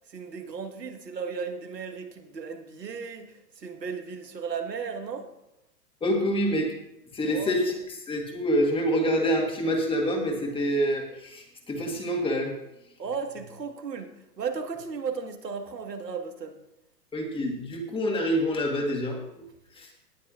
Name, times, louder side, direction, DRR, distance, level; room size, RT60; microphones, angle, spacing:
voice 1, 0.1-5.3 7.3-7.6 13.0-16.6, right 5 dB, 90° right, 5 dB, 1.7 m, -35 dB
voice 2, 6.0-6.7 7.1-7.7 8.1-12.5 17.1-19.4 19.7-19.9, equal, 10° left, 2 dB, 1.6 m, -26 dB
17.5 x 8.4 x 2.5 m, 0.86 s
hypercardioid pair, 125°, 48 cm